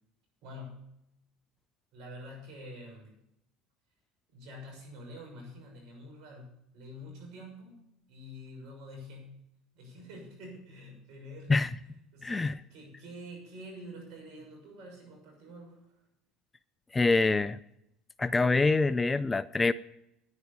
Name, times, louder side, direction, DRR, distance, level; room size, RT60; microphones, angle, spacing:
voice 1, 0.4-0.9 1.9-3.1 4.3-7.8 8.1-9.3 9.7-11.6 12.1-15.9, equal, 65° right, 1 dB, 6.3 m, -47 dB
voice 2, 12.2-12.6 16.9-17.6 18.2-19.7, left 3 dB, 20° left, 15 dB, 0.4 m, -25 dB
10.0 x 9.7 x 6.8 m, 0.81 s
hypercardioid pair, 80°, 0 cm